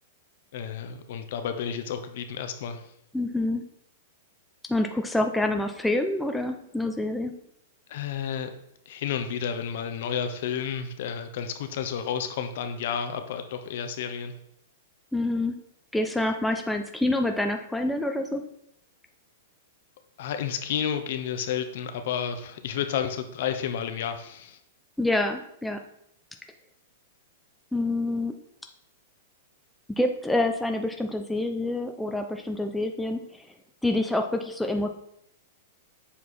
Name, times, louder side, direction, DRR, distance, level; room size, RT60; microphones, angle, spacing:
voice 1, 0.5-2.8 7.9-8.5 8.9-14.3 20.2-24.6, left 8 dB, 65° left, 8 dB, 0.9 m, -31 dB
voice 2, 3.1-3.6 4.7-7.3 15.1-15.6 15.9-18.4 25.0-25.8 27.7-28.3 29.9-33.5 33.8-34.9, left 2 dB, 5° left, 4 dB, 0.6 m, -27 dB
7.2 x 4.5 x 4.2 m, 0.73 s
hypercardioid pair, 135°, 0 cm